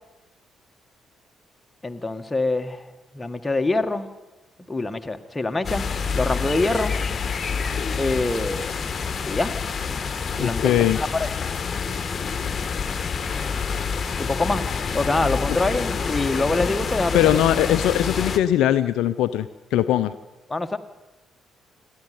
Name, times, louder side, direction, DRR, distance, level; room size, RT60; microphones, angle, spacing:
voice 1, 1.8-2.9 3.1-4.1 4.7-5.9 6.1-7.0 8.0-9.0 9.3-9.5 10.4-10.7 11.0-11.3 14.2-14.6 14.9-17.4 20.5-20.8, left 2 dB, 15° left, 7 dB, 1.7 m, -25 dB
sound 1, 5.6-18.4, left 5 dB, 40° left, 1.4 m, -27 dB
voice 2, 10.4-11.0 17.1-20.1, left 11 dB, 65° left, 12 dB, 0.6 m, -20 dB
28.5 x 11.5 x 9.6 m, 1.1 s
figure-of-eight pair, 45°, 0 cm